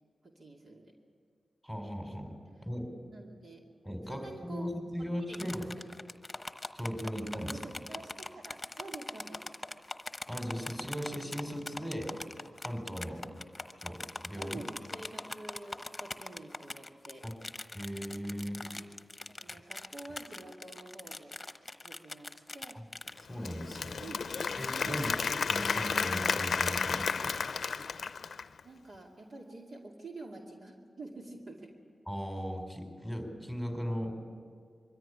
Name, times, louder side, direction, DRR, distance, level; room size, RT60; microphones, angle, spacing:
voice 1, 0.2-0.9 3.1-3.6 4.1-4.7 5.3-6.0 7.0-7.1 7.4-9.5 14.3-17.3 18.6-18.9 19.3-21.4 21.8-22.8 24.0-24.3 24.8-25.3 28.2-28.4 28.6-31.7, right 2 dB, 65° right, 0 dB, 2.6 m, -48 dB
voice 2, 1.6-2.3 2.6-2.9 3.8-5.7 6.7-7.6 10.3-12.1 12.6-13.3 13.8-14.6 17.2-17.4 17.7-18.7 23.3-24.1 24.6-25.1 25.5-27.4 32.1-34.1, equal, 10° right, 4 dB, 4.7 m, -38 dB
sound 1, 5.3-23.2, left 2 dB, 30° left, 1.0 m, -42 dB
Applause / Crowd, 23.2-28.6, left 5 dB, 75° left, 0.6 m, -32 dB
23.0 x 14.0 x 9.9 m, 2.1 s
cardioid pair, 50°, 0 cm